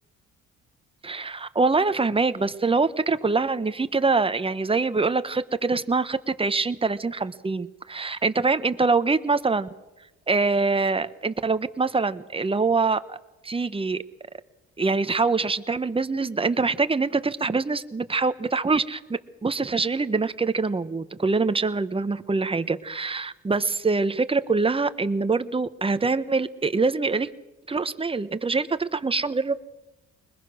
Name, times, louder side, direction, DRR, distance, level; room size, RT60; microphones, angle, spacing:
voice 1, 1.0-9.7 10.3-13.2 13.4-14.0 14.8-19.0 19.4-27.3 27.7-29.5, right 4 dB, 20° right, 12 dB, 1.0 m, -24 dB
22.0 x 20.5 x 6.3 m, 0.99 s
cardioid pair, 90°, 30 cm